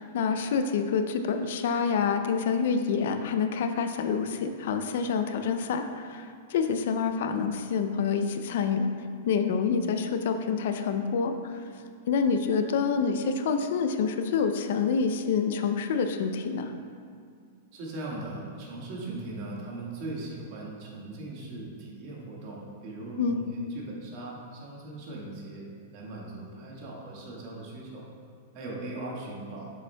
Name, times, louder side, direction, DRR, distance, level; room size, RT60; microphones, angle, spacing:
voice 1, 0.0-8.9 9.3-11.6 12.1-16.7 23.2-23.4, left 6 dB, 65° left, 7 dB, 0.4 m, -27 dB
voice 2, 17.7-25.6 25.9-28.1 28.5-29.7, right 2 dB, 45° right, -3 dB, 1.5 m, -39 dB
7.1 x 6.9 x 2.2 m, 2.2 s
hypercardioid pair, 145°, 0 cm